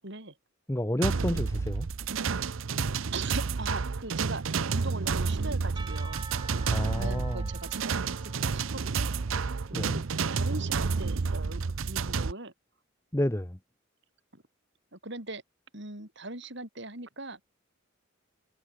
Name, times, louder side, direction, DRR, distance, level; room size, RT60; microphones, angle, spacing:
voice 1, 0.0-0.4 3.1-4.4 4.7-6.3 6.9-9.2 9.7-12.5 14.3-14.4 14.9-15.4 15.7-17.4, right 2 dB, 60° right, 7.0 m, -40 dB
voice 2, 0.7-1.9 6.7-7.4 9.7-10.0 13.1-13.6, left 1 dB, 15° left, 1.0 m, -30 dB
sound 1, 1.0-12.3, right 5 dB, 75° right, 0.7 m, -30 dB
Percussion / Church bell, 5.8-10.3, right 4 dB, 20° right, 5.1 m, -48 dB
head